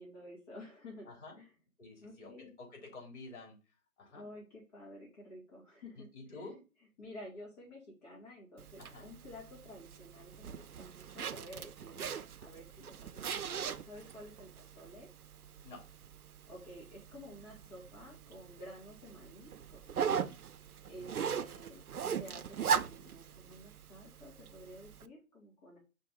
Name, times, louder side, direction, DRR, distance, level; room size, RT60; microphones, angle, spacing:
voice 1, 0.0-1.1 1.4-1.5 2.0-2.5 4.1-6.5 7.0-13.1 13.4-15.1 16.5-20.3 20.9-21.8 22.1-25.8, left 1 dB, 25° left, -4 dB, 2.1 m, -51 dB
voice 2, 1.0-1.4 1.8-3.6 4.0-4.2 6.0-6.6 8.8-9.1 13.2-13.4 15.6-15.8 20.1-20.3 21.0-21.3, left 2 dB, 50° left, 0 dB, 3.2 m, -50 dB
Zipper (clothing), 8.6-25.1, right 7 dB, 85° right, 0.6 m, -40 dB
5.1 x 3.5 x 5.4 m, 0.32 s
figure-of-eight pair, 145°, 43 cm